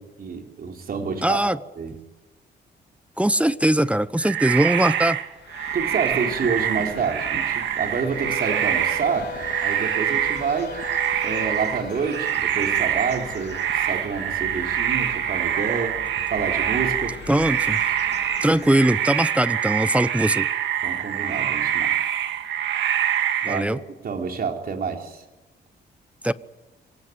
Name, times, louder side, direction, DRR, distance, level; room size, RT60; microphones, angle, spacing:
voice 1, 0.0-2.0 5.7-10.7 11.2-16.0 16.3-17.1 20.8-22.0 23.4-25.2, right 5 dB, 55° right, 3 dB, 4.0 m, -28 dB
voice 2, 1.2-1.6 3.2-5.2 17.3-17.8 18.4-20.5 23.5-23.8 26.2-26.3, right 1 dB, 5° right, 16 dB, 0.8 m, -21 dB
sound 1, 4.2-23.7, right 10 dB, 80° right, 2.0 m, -25 dB
sound 2, 5.2-18.7, left 8 dB, 65° left, 2.5 m, -41 dB
sound 3, 7.8-12.4, left 4 dB, 45° left, 1.4 m, -38 dB
25.5 x 18.0 x 9.5 m, 1.1 s
cardioid pair, 95°, 19 cm